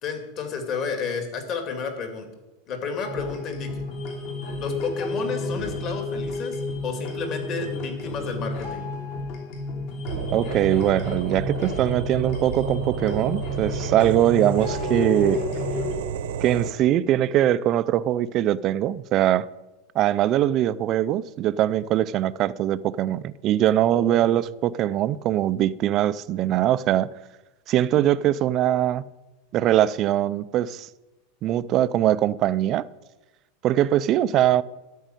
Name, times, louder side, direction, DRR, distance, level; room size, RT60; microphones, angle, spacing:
voice 1, 0.0-2.3 2.7-3.8 4.6-6.6 6.8-8.9 23.9-24.3, left 5 dB, 40° left, 2.4 m, -31 dB
sound 1, 3.0-16.0, left 3 dB, 55° left, 2.9 m, -32 dB
sound 2, 10.1-16.7, right 8 dB, 80° right, 1.0 m, -31 dB
voice 2, 10.3-15.4 16.4-19.5 19.9-27.1 27.7-29.0 29.5-30.9 31.4-32.9 33.6-34.6, right 12 dB, 35° right, 0.4 m, -22 dB
12.5 x 5.4 x 9.1 m
supercardioid pair, 150°, 0 cm